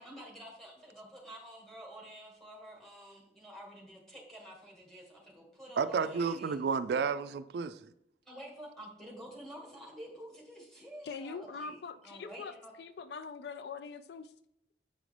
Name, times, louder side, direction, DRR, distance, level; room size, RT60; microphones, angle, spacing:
voice 1, 0.0-6.6 8.3-12.7, right 1 dB, 5° left, 1.7 m, -49 dB
voice 2, 5.8-7.9, right 5 dB, 65° right, 0.3 m, -31 dB
voice 3, 11.0-14.3, left 5 dB, 65° left, 0.4 m, -43 dB
7.8 x 5.1 x 3.3 m
head